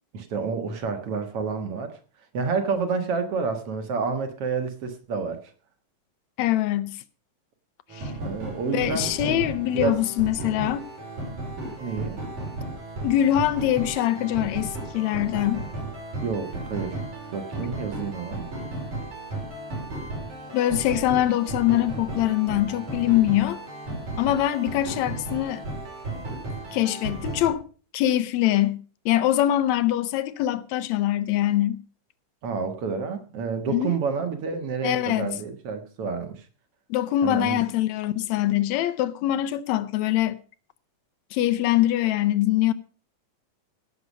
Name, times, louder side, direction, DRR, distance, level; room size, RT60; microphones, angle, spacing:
voice 1, 0.1-2.0 2.3-5.5 8.2-9.4 9.7-10.0 11.8-12.2 16.2-17.0 17.3-18.5 32.4-36.5 37.2-37.6, right 5 dB, 55° right, 2.2 m, -29 dB
voice 2, 6.4-7.0 7.9-8.1 8.6-10.9 13.0-15.7 20.5-23.6 24.2-25.6 26.7-27.7 27.9-31.8 33.7-34.0 34.8-35.4 36.9-40.4 41.3-42.7, left 13 dB, 75° left, 1.9 m, -23 dB
sound 1, 7.9-27.5, right 2 dB, 75° right, 7.0 m, -34 dB
16.5 x 7.0 x 5.3 m
omnidirectional pair, 3.5 m